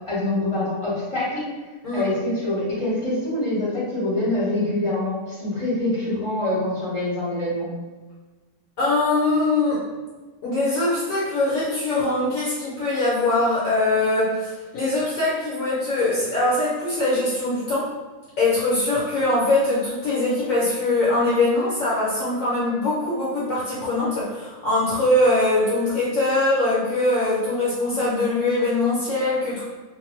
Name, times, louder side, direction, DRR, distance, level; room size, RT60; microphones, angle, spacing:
voice 1, 0.1-1.5 1.9-7.7, left 1 dB, 25° left, -10 dB, 0.8 m, -25 dB
voice 2, 8.8-9.8 10.4-17.9 18.4-29.6, left 2 dB, 65° left, -8 dB, 1.1 m, -22 dB
2.6 x 2.2 x 3.0 m, 1.3 s
omnidirectional pair, 1.7 m